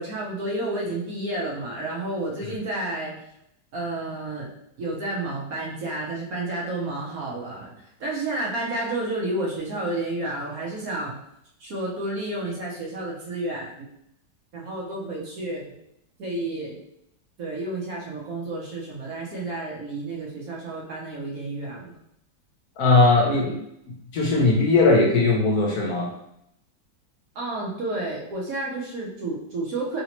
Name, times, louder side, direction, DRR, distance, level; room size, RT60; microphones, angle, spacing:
voice 1, 0.0-3.2 3.7-4.5 4.8-7.7 8.0-11.2 11.6-13.9 14.5-15.8 16.2-16.8 17.4-22.0 27.3-30.0, right 2 dB, 60° right, -4 dB, 1.0 m, -31 dB
voice 2, 22.8-23.6 24.1-26.1, left 3 dB, 70° left, -2 dB, 0.9 m, -19 dB
3.2 x 2.7 x 2.9 m, 0.77 s
omnidirectional pair, 1.9 m